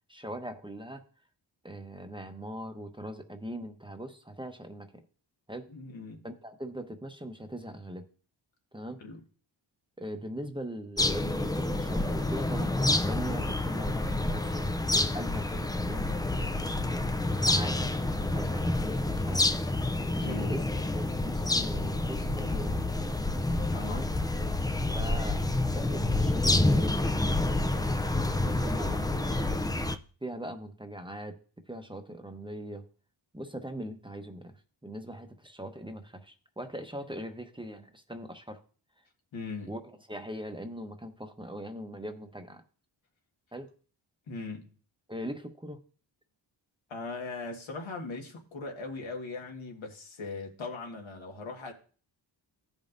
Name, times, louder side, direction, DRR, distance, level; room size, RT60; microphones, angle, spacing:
voice 1, 0.1-1.0 1.6-5.0 5.5-5.7 6.2-8.1 8.7-9.0 10.0-16.5 17.2-19.5 20.1-20.6 20.9-22.8 23.8-24.1 24.9-29.4 30.2-31.4 31.7-32.9 33.3-38.6 39.7-39.8 40.1-42.6 43.5-43.7 45.1-45.8, equal, 10° right, 0.9 m, -41 dB
voice 2, 5.7-6.2 9.0-9.2 20.2-20.5 23.7-24.0 39.3-39.7 44.3-44.7 46.9-51.7, left 3 dB, 80° left, 1.7 m, -39 dB
sound 1, 11.0-30.0, left 2 dB, 10° left, 0.4 m, -28 dB
15.0 x 5.4 x 2.6 m
cardioid pair, 75°, 47 cm